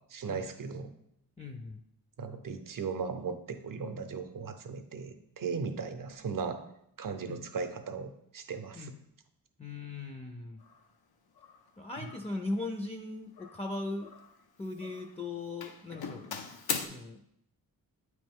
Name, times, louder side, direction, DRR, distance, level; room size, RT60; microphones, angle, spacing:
voice 1, 0.1-0.9 2.2-6.6 7.0-8.9, right 5 dB, 65° right, 8 dB, 0.6 m, -37 dB
voice 2, 1.4-1.8 7.3-7.4 8.7-9.0 9.6-10.6 11.8-14.1 14.6-16.3 16.9-17.2, left 2 dB, 20° left, 3 dB, 0.4 m, -38 dB
Doorbell, 10.6-10.8 11.4-11.7 12.0-12.4 13.4-14.4 14.7-15.2 15.6-16.9, left 6 dB, 90° left, 0.6 m, -40 dB
8.5 x 3.1 x 3.5 m, 0.77 s
wide cardioid pair, 105°, 36 cm